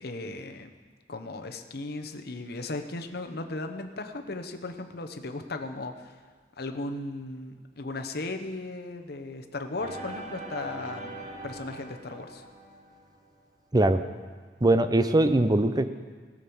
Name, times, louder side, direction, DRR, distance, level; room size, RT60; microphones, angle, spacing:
voice 1, 0.0-0.7 1.1-6.2 6.6-12.4, left 2 dB, 60° left, 6 dB, 0.9 m, -36 dB
sound 1, 9.8-13.3, right 2 dB, 40° right, 1.3 m, -42 dB
voice 2, 14.6-15.9, right 1 dB, 20° right, 10 dB, 0.6 m, -21 dB
18.0 x 6.4 x 7.0 m, 1.5 s
head